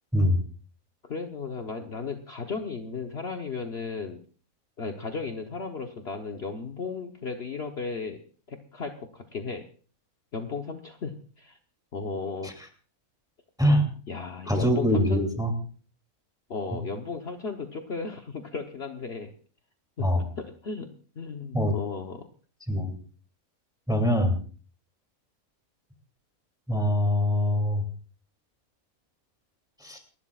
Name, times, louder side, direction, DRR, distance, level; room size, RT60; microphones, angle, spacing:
voice 1, 1.0-4.2 4.8-8.2 8.5-9.6 10.3-11.6 11.9-12.5 14.1-15.2 16.5-19.3 20.0-22.3, left 4 dB, 50° left, 3 dB, 1.2 m, -35 dB
voice 2, 14.5-15.5 20.0-20.2 21.5-21.7 22.7-23.0 23.9-24.4 26.7-27.8 29.8-30.0, equal, 5° right, 3 dB, 2.6 m, -23 dB
29.5 x 11.5 x 2.4 m, 0.41 s
omnidirectional pair, 1.5 m